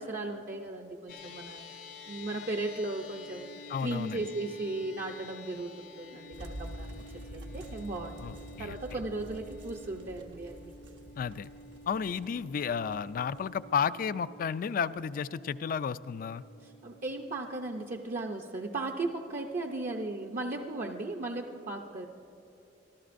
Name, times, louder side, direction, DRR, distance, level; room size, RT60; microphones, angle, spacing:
voice 1, 0.0-3.6 3.8-7.0 7.3-10.7 16.6-22.1, right 2 dB, 50° right, 3 dB, 0.6 m, -36 dB
sound 1, 1.1-19.6, left 2 dB, 75° left, 1.5 m, -51 dB
voice 2, 3.7-4.3 8.2-8.8 11.2-11.5 11.9-16.4, left 6 dB, 50° left, 16 dB, 0.3 m, -32 dB
sound 2, 6.3-13.9, equal, 85° right, 1.2 m, -47 dB
23.5 x 14.0 x 2.6 m, 3.0 s
head